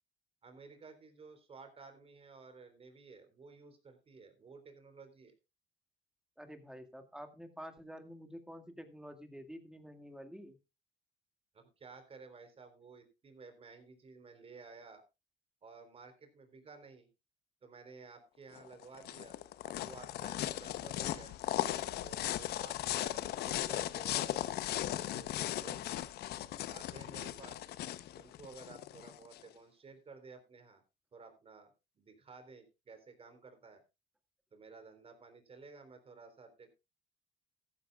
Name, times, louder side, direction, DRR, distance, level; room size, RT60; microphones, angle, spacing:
voice 1, 0.4-5.3 11.5-15.0 15.6-17.1 17.6-19.4 19.7-21.4 22.0-24.3 25.0-25.8 26.7-27.7 28.1-30.8 31.1-33.8 34.5-36.7, right 4 dB, 35° right, 7 dB, 3.8 m, -54 dB
voice 2, 6.4-10.6, equal, 5° right, 7 dB, 2.1 m, -49 dB
sound 1, 18.6-29.4, left 13 dB, 70° left, 0.9 m, -37 dB
14.5 x 13.5 x 2.4 m, 0.26 s
cardioid pair, 110°, 17 cm